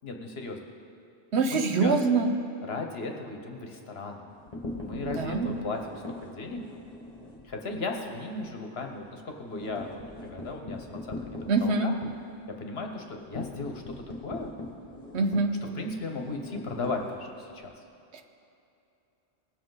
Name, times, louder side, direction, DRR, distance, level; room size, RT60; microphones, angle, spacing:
voice 1, 0.0-0.7 1.5-1.9 2.7-4.3 4.8-6.6 7.4-11.9 12.6-13.9 14.2-14.5 15.7-17.7, left 3 dB, 65° left, 3 dB, 1.2 m, -36 dB
voice 2, 1.3-2.3 5.0-5.6 11.5-11.9 15.1-15.6 18.1-18.2, right 3 dB, 75° right, 6 dB, 1.2 m, -25 dB
sound 1, 4.3-7.5 7.9-8.1 8.4-8.5 8.8-17.6, left 2 dB, 35° left, 1.7 m, -41 dB
19.0 x 7.6 x 4.0 m, 2.7 s
omnidirectional pair, 1.1 m